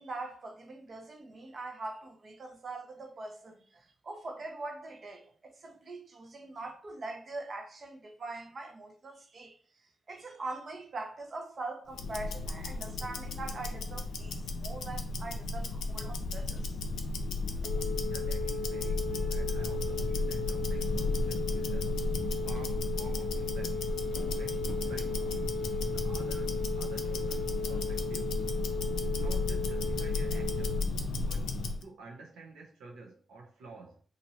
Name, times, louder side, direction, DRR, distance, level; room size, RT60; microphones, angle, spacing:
voice 1, 0.0-9.6 10.1-16.7 17.2-17.3, right 2 dB, 55° right, 0.8 m, -42 dB
Tick-tock, 11.9-31.8, left 3 dB, 80° left, 0.4 m, -34 dB
Telephone, 17.6-30.8, left 3 dB, 55° left, 0.7 m, -37 dB
voice 2, 18.1-22.0 22.4-24.0 24.3-25.6 25.9-28.3 29.1-30.8 31.1-31.5 31.8-34.0, right 3 dB, 85° right, 0.7 m, -50 dB
3.0 x 2.5 x 2.8 m
supercardioid pair, 45°, 0 cm